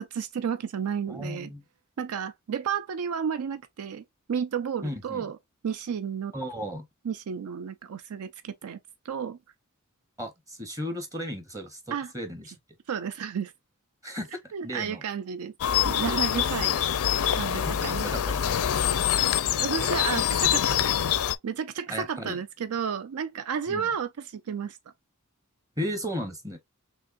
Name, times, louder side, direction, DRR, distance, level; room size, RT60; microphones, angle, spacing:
voice 1, 0.0-1.5 2.0-5.4 5.6-6.3 7.1-8.8 9.0-9.4 11.9-12.1 12.9-13.5 14.5-15.5 15.8-16.8 17.4-18.1 19.6-20.9 21.4-24.8, right 7 dB, 75° right, 0.4 m, -32 dB
voice 2, 1.1-1.6 4.8-5.2 6.3-6.8 10.2-12.5 14.0-15.0 17.5-18.6 21.9-22.4 23.7-23.9 25.8-26.6, equal, 15° right, 0.8 m, -35 dB
sound 1, 15.6-21.4, left 9 dB, 70° left, 0.4 m, -25 dB
6.2 x 2.5 x 2.4 m
head